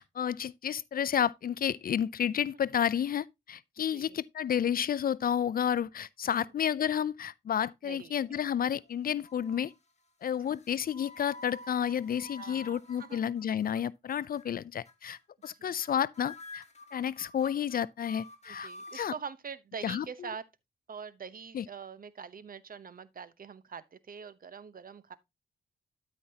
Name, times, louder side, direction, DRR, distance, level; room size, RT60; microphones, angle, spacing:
voice 1, 0.0-9.7 10.2-16.6 16.9-19.1 19.8-20.0 21.5-21.7, left 9 dB, 50° left, 0.4 m, -31 dB
voice 2, 7.8-8.4 12.4-13.2 15.5-15.8 18.5-20.5 20.9-25.2, right 6 dB, 50° right, 0.9 m, -44 dB
sound 1, 8.3-8.9 9.2-9.7 10.5-13.8 14.1-14.4 14.9-15.2 15.4-15.5 15.8-15.9 16.1-19.2, left 2 dB, 35° left, 1.5 m, -49 dB
12.5 x 5.3 x 2.8 m
supercardioid pair, 45°, 19 cm